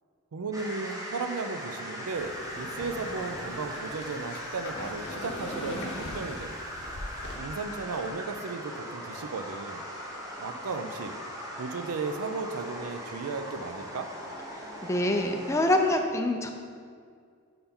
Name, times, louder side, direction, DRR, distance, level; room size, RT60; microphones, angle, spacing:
voice 1, 0.3-6.6 7.3-9.9 10.4-11.1 11.6-14.1, right 4 dB, 85° right, 8 dB, 0.5 m, -35 dB
sound 1, 0.5-16.0, equal, 15° right, 0.8 m, -40 dB
sound 2, 2.1-7.4, left 1 dB, 55° left, 0.8 m, -41 dB
voice 2, 14.8-16.5, left 1 dB, 15° left, 4 dB, 0.4 m, -25 dB
5.7 x 5.3 x 4.3 m, 2.2 s
head